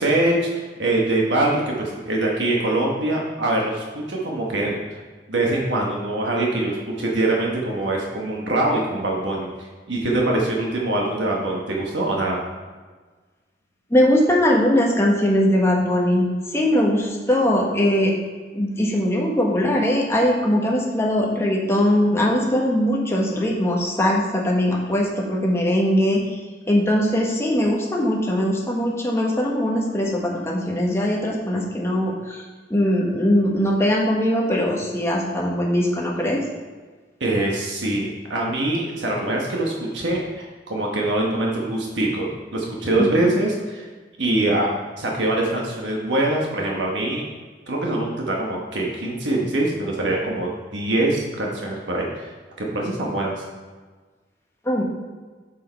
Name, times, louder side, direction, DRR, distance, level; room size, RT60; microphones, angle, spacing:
voice 1, 0.0-5.0 5.3-12.4 37.2-43.9 44.2-44.7 45.0-47.2 47.7-52.3 52.6-53.4, right 2 dB, 90° right, -2 dB, 1.2 m, -23 dB
voice 2, 13.9-18.1 18.5-26.2 26.7-32.4 32.7-36.4 43.0-43.3 54.6-54.8, equal, 15° left, -2 dB, 1.3 m, -20 dB
7.5 x 6.3 x 4.5 m, 1.4 s
head